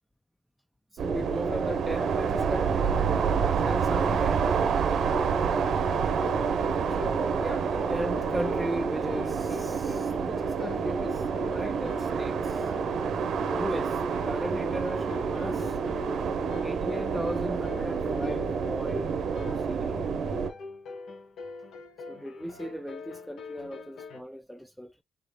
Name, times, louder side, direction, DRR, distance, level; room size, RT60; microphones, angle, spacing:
voice 1, 0.9-2.9 3.5-4.4 7.0-12.7 13.5-15.8 16.6-19.1 19.3-20.0 22.1-25.0, equal, ahead, 0.3 m, -37 dB
sound 1, 1.0-20.5, right 6 dB, 70° right, 0.6 m, -28 dB
sound 2, 5.0-24.2, left 4 dB, 75° left, 1.1 m, -44 dB
3.7 x 3.4 x 2.2 m
cardioid pair, 85°, 0 cm